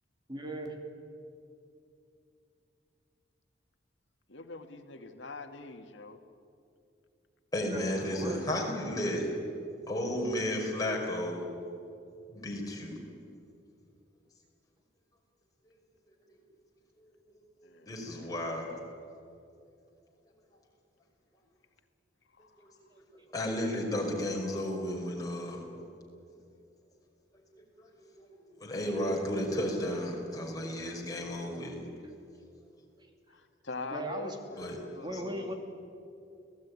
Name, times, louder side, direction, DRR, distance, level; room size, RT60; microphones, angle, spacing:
voice 1, 0.3-0.8 7.7-7.8 8.1-8.4 33.9-34.3 35.0-35.5, right 1 dB, 25° right, 3 dB, 2.9 m, -37 dB
voice 2, 4.3-6.2 17.6-18.3 18.7-18.8 22.4-22.6 33.3-35.5, left 3 dB, 80° left, 6 dB, 2.0 m, -44 dB
voice 3, 7.5-9.3 9.9-11.5 12.3-13.0 17.9-18.7 23.3-25.6 27.8-27.9 28.6-31.8 34.6-34.8 35.1-35.2, left 1 dB, 20° left, -1 dB, 5.2 m, -33 dB
30.0 x 18.0 x 9.8 m, 2.6 s
head